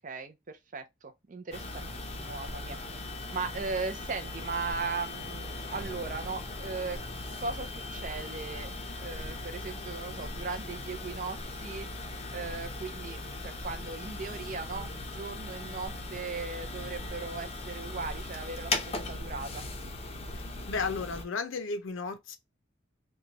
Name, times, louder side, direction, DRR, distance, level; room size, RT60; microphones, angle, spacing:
voice 1, 0.0-3.1 3.3-7.0 7.4-8.7 9.0-11.9 12.3-19.6, right 4 dB, 40° right, 0.5 m, -38 dB
sound 1, 1.5-21.2, left 2 dB, 30° left, 0.5 m, -39 dB
voice 2, 20.7-22.4, left 4 dB, 85° left, 0.6 m, -33 dB
3.0 x 2.2 x 3.8 m
head